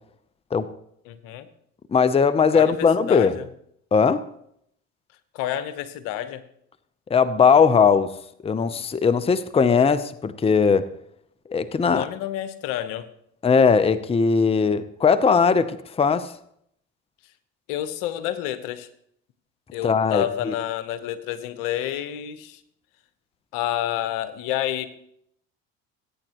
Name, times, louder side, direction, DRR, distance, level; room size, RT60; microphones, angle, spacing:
voice 1, 1.1-1.5 2.5-3.5 5.3-6.4 11.8-13.1 17.7-18.9 19.7-22.6 23.5-24.9, left 12 dB, 75° left, 1.0 m, -29 dB
voice 2, 1.9-3.3 3.9-4.2 7.1-8.2 8.4-10.9 11.5-12.1 13.4-16.3 19.8-20.5, left 5 dB, 20° left, 0.6 m, -19 dB
20.0 x 8.9 x 3.0 m
supercardioid pair, 75°, 32 cm